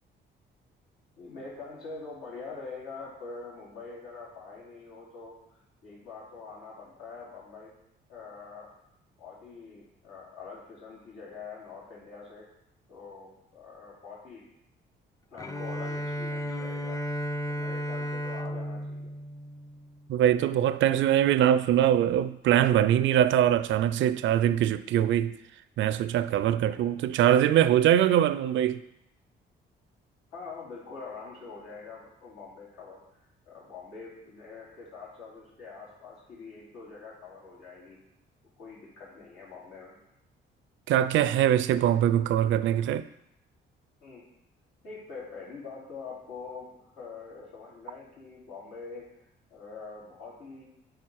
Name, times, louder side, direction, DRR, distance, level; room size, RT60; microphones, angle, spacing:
voice 1, 1.2-7.7 8.1-8.7 9.2-12.5 12.9-14.4 15.3-17.0 17.5-19.1 26.6-26.9 30.3-38.0 38.6-40.0 44.0-44.2 44.8-49.2 49.5-50.6, left 4 dB, 90° left, 2.8 m, -44 dB
Bowed string instrument, 15.4-20.3, equal, 15° left, 0.5 m, -34 dB
voice 2, 20.1-25.4 25.8-28.8 40.9-43.1, right 11 dB, 75° right, 0.4 m, -23 dB
9.1 x 3.8 x 4.6 m
cardioid pair, 90°, 20 cm